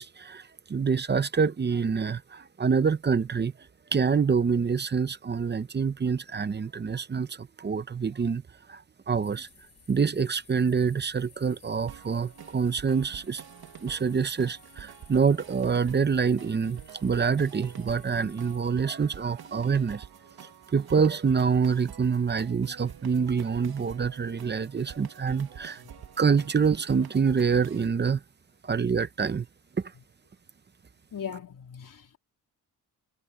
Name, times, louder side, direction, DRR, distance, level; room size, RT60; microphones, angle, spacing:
voice 1, 0.0-3.5 3.9-8.4 8.7-9.5 9.9-13.4 13.8-20.1 20.7-25.8 26.2-28.2 28.6-29.5 29.8-29.9, right 6 dB, 25° right, 0.7 m, -26 dB
sound 1, 9.2-18.6, left 5 dB, 35° left, 5.1 m, -57 dB
sound 2, 11.9-27.9, right 9 dB, 65° right, 1.7 m, -47 dB
voice 2, 31.1-32.2, left 8 dB, 50° left, 3.3 m, -39 dB
wide cardioid pair, 155°, 40 cm